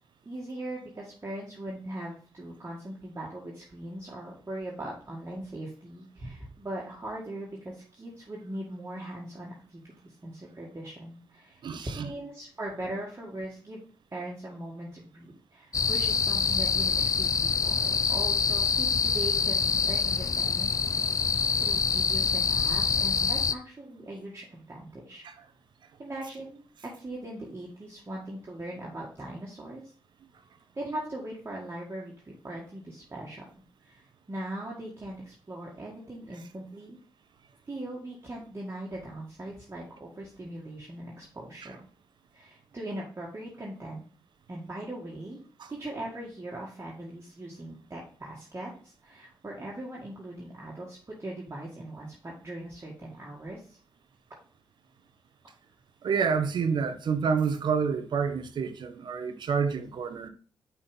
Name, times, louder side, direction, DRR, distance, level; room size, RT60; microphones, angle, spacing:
voice 1, 0.3-13.8 14.1-21.3 21.6-25.2 26.0-26.6 27.0-29.8 30.8-33.4 33.8-37.0 37.7-41.8 42.3-44.0 44.5-45.4 45.7-53.8, right 1 dB, 30° right, 1.9 m, -40 dB
voice 2, 11.6-12.1 25.2-25.3 41.6-41.7 45.6-45.7 56.0-60.3, right 6 dB, 70° right, 0.8 m, -28 dB
sound 1, 15.7-23.5, left 5 dB, 45° left, 0.4 m, -26 dB
5.6 x 4.4 x 5.1 m
cardioid pair, 60°, 8 cm